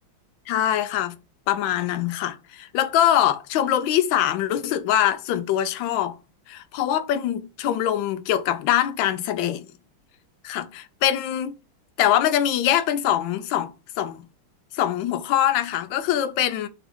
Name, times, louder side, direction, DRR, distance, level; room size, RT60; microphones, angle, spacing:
voice 1, 0.5-1.2 1.5-6.2 6.5-9.7 10.4-11.6 12.0-13.7 14.0-14.3 14.7-16.7, left 11 dB, 80° left, 1.3 m, -23 dB
5.9 x 2.7 x 3.3 m
omnidirectional pair, 2.2 m